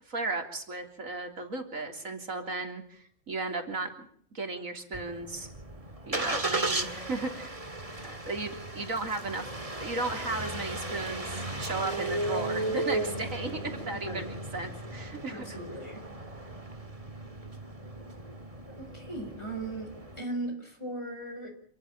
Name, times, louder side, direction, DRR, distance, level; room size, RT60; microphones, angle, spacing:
voice 1, 0.1-4.1 4.3-5.5 6.1-7.5 8.0-9.5 9.8-15.6, right 3 dB, 80° right, 5 dB, 3.8 m, -35 dB
Engine starting, 4.9-20.2, right 2 dB, 25° right, 2.3 m, -36 dB
voice 2, 13.9-14.3 15.3-16.1 18.3-18.5 18.8-21.5, right 1 dB, 20° left, 5 dB, 4.7 m, -38 dB
27.5 x 14.0 x 8.7 m, 0.62 s
omnidirectional pair, 1.4 m